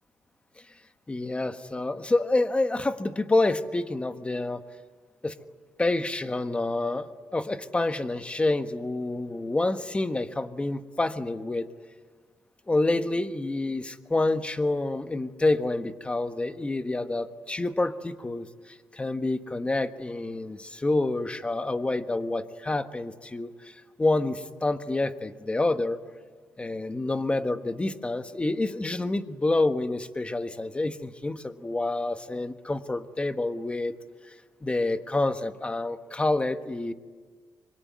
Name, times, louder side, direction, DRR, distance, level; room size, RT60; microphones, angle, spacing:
voice 1, 1.1-4.6 5.2-5.4 5.8-11.7 12.7-26.0 26.6-33.9 34.3-34.4 34.6-36.9, left 2 dB, 15° left, 9 dB, 1.4 m, -28 dB
25.0 x 23.0 x 9.5 m, 1.5 s
cardioid pair, 100°, 7 cm